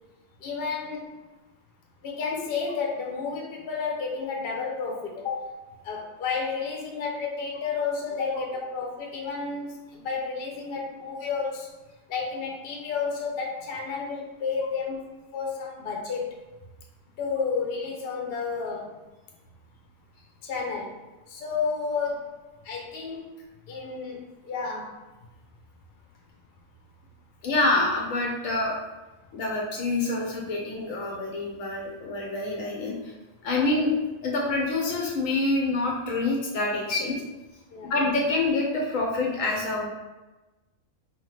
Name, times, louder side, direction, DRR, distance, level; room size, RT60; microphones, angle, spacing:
voice 1, 0.4-1.1 2.0-11.7 12.1-15.0 15.3-16.3 17.2-18.9 20.4-21.0 21.3-22.3 22.6-23.2 23.7-24.9 37.7-37.9, left 5 dB, 50° left, -1 dB, 0.8 m, -31 dB
voice 2, 27.4-28.8 29.3-33.1 33.4-33.9 34.2-37.2 37.8-39.9, left 2 dB, 70° left, -1 dB, 1.0 m, -26 dB
4.2 x 2.8 x 3.2 m, 1.1 s
omnidirectional pair, 1.5 m